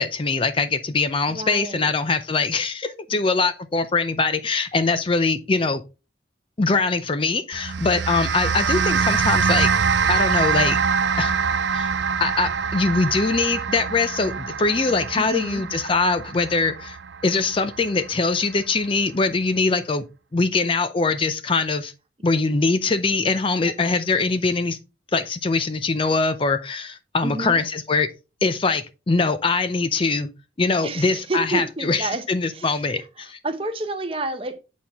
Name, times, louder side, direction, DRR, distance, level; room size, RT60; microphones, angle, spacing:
voice 1, 0.0-5.8 6.6-9.7 10.1-10.8 11.2-11.4 11.7-11.9 12.2-17.0 17.2-20.0 20.3-21.9 22.2-24.8 25.1-28.1 28.4-30.3 30.6-33.4, left 3 dB, 30° left, 0.4 m, -22 dB
voice 2, 1.3-1.9 15.2-15.6 23.6-23.7 27.2-27.6 30.8-32.2 32.5-34.7, right 2 dB, 30° right, 0.8 m, -30 dB
sound 1, 7.5-18.1, right 6 dB, 70° right, 0.5 m, -24 dB
7.7 x 4.2 x 3.5 m
head